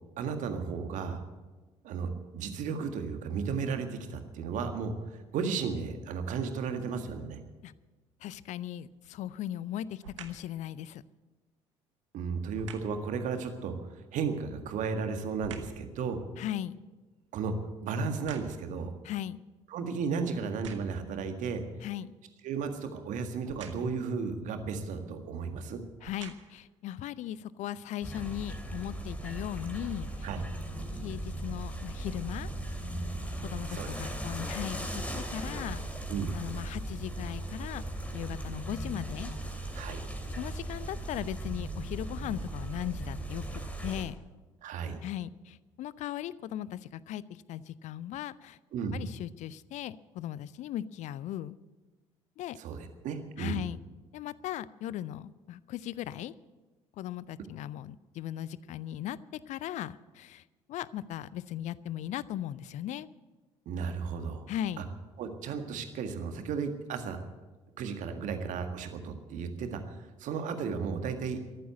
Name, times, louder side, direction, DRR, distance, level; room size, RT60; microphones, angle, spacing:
voice 1, 0.2-1.2 1.8-7.4 12.1-16.3 17.3-17.6 17.8-18.9 19.7-21.6 22.4-25.8 30.2-30.4 33.7-33.9 36.1-36.4 39.8-40.0 44.6-45.0 48.7-49.0 52.6-53.6 63.7-64.5 64.8-64.9 65.2-67.2 67.8-71.4, right 5 dB, 55° right, 7 dB, 1.8 m, -34 dB
voice 2, 8.2-11.0 16.4-16.8 19.0-19.4 21.8-22.1 26.0-30.3 31.0-32.5 33.4-35.0 35.3-35.8 36.3-37.8 38.1-39.3 40.3-44.2 45.0-48.6 48.9-51.6 52.4-52.6 53.4-53.8 54.1-56.3 57.0-60.4 60.7-63.1 64.5-64.8, left 12 dB, 50° left, 20 dB, 0.5 m, -38 dB
sound 1, 8.8-9.2 10.0-10.5 12.5-13.0 14.4-15.9 16.3-18.8 19.5-19.6 20.4-21.1 23.4-24.0 25.1-25.2 25.9-26.7 27.3-27.4, right 8 dB, 75° right, 1.0 m, -49 dB
sound 2, 28.0-44.0, right 1 dB, 10° left, 2.9 m, -38 dB
14.0 x 11.0 x 8.2 m, 1.2 s
figure-of-eight pair, 50°, 16 cm